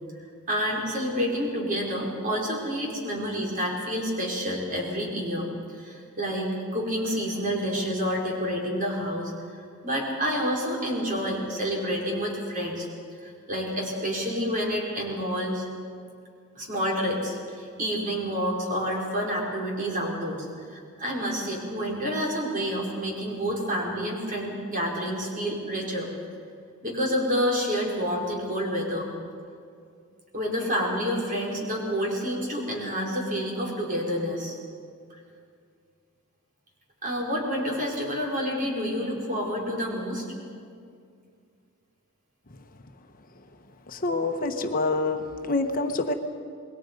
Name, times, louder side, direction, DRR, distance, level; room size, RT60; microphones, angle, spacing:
voice 1, 0.5-9.3 9.8-12.9 13.2-15.6 16.6-20.5 20.7-26.1 26.8-29.1 30.3-34.6 37.0-40.3, equal, 40° right, -1 dB, 4.7 m, -28 dB
voice 2, 43.9-46.1, left 3 dB, 40° left, 5 dB, 1.1 m, -26 dB
27.5 x 21.0 x 5.3 m, 2.3 s
head